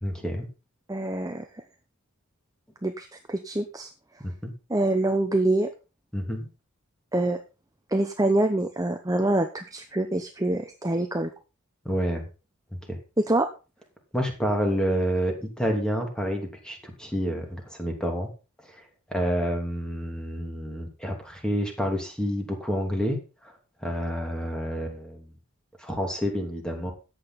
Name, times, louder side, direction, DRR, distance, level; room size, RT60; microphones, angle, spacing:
voice 1, 0.0-0.5 4.2-4.5 6.1-6.5 11.8-12.2 12.9-13.0 14.1-18.3 18.7-18.8 19.1-23.2 23.8-25.3 25.8-26.9, equal, 5° left, 2 dB, 2.9 m, -28 dB
voice 2, 0.9-1.6 2.8-3.9 4.7-5.7 7.1-7.4 7.9-11.3 13.2-13.5, right 2 dB, 15° right, 6 dB, 0.9 m, -25 dB
14.0 x 8.9 x 4.2 m, 0.32 s
head